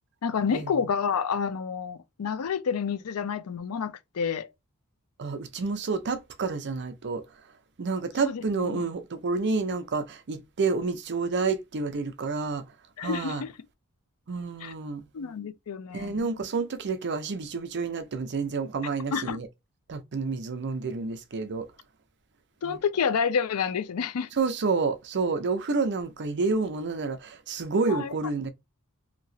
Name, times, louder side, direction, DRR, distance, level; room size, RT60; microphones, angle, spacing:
voice 1, 0.2-4.5 8.2-8.9 13.0-13.5 14.6-14.7 15.1-16.3 19.1-19.4 22.6-24.3 27.9-28.2, left 6 dB, 70° left, 0.5 m, -29 dB
voice 2, 5.2-7.2 7.8-12.6 13.0-13.4 14.3-15.0 15.9-19.5 19.9-21.7 22.6-22.8 24.4-28.5, right 4 dB, 50° right, 0.6 m, -29 dB
3.0 x 2.8 x 2.6 m
head